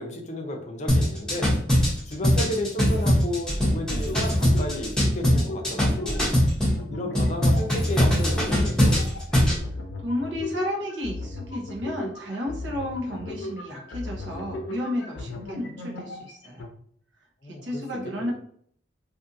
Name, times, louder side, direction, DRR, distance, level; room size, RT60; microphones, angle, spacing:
voice 1, 0.0-1.6 2.1-6.3 6.9-9.0 17.4-17.8 18.2-18.3, left 1 dB, 40° left, 2 dB, 0.5 m, -33 dB
sound 1, 0.9-6.8 7.1-9.6, equal, 5° left, 0.8 m, -21 dB
sound 2, 3.9-5.0 5.3-6.4 6.7-16.7, left 2 dB, 85° left, 0.6 m, -38 dB
voice 2, 10.0-16.7 17.4-18.3, left 1 dB, 80° right, -2 dB, 0.9 m, -32 dB
2.6 x 2.5 x 2.6 m, 0.62 s
head